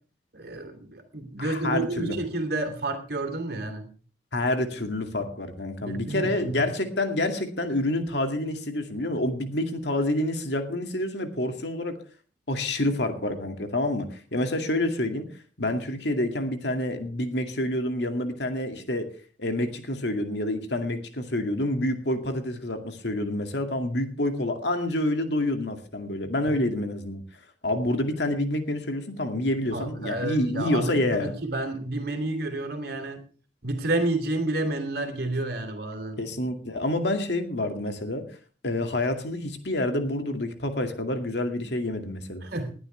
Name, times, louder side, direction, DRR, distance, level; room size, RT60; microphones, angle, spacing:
voice 1, 0.3-3.8 5.8-6.7 26.5-26.6 29.7-33.2 33.6-36.2 42.4-42.7, right 2 dB, 55° right, 7 dB, 3.0 m, -30 dB
voice 2, 1.4-2.2 4.3-12.0 12.5-15.2 15.6-19.1 19.4-27.2 27.6-31.3 36.2-38.2 38.6-42.4, left 1 dB, 65° left, 6 dB, 2.2 m, -28 dB
20.5 x 11.0 x 3.4 m, 0.37 s
head